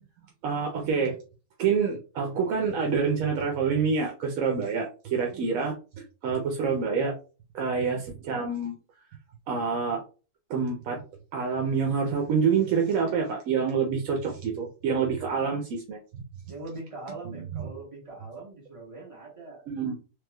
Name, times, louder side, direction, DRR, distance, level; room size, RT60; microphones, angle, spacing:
voice 1, 0.4-1.2 1.6-5.7 6.2-7.1 7.5-8.8 9.5-10.0 10.5-11.0 11.3-16.2 17.3-17.6 19.7-20.0, right 5 dB, 85° right, 1 dB, 1.0 m, -27 dB
voice 2, 5.3-5.7 16.5-19.6, right 2 dB, 25° right, -4 dB, 1.4 m, -42 dB
3.3 x 3.1 x 2.2 m, 0.35 s
omnidirectional pair, 1.4 m